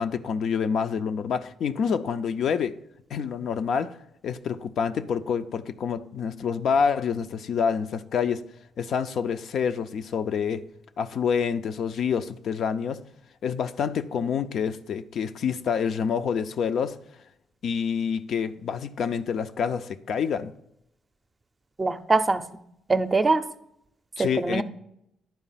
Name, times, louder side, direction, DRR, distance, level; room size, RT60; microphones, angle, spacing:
voice 1, 0.0-2.7 3.1-4.0 4.2-8.4 8.8-10.6 11.0-13.0 13.4-17.0 17.6-20.5 24.2-24.6, left 6 dB, 65° left, 0.5 m, -27 dB
voice 2, 21.8-22.6 22.9-23.4 24.2-24.6, right 3 dB, 25° right, 0.6 m, -23 dB
10.5 x 4.5 x 5.7 m
cardioid pair, 90°, 0 cm